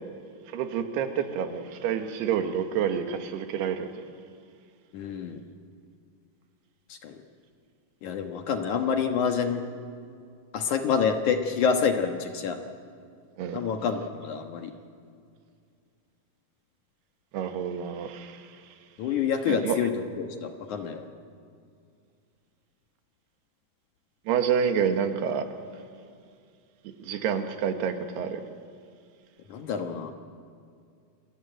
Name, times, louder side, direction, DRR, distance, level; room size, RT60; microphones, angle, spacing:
voice 1, 0.5-3.9 13.4-13.6 17.3-18.5 19.5-19.8 24.3-25.5 27.0-28.4, right 8 dB, 90° right, 7 dB, 3.5 m, -28 dB
voice 2, 4.9-5.4 6.9-7.2 8.0-9.6 10.5-12.6 13.5-14.7 19.0-21.1 29.5-30.1, left 6 dB, 60° left, 5 dB, 2.3 m, -27 dB
28.5 x 21.5 x 9.1 m, 2.3 s
omnidirectional pair, 4.6 m